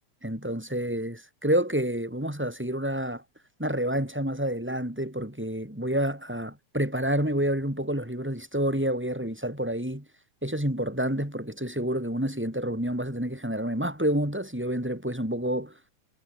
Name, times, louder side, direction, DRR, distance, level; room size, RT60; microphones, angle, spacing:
voice 1, 0.2-3.2 3.6-10.1 10.4-15.8, right 1 dB, 5° right, 5.3 m, -28 dB
omnidirectional pair, 3.8 m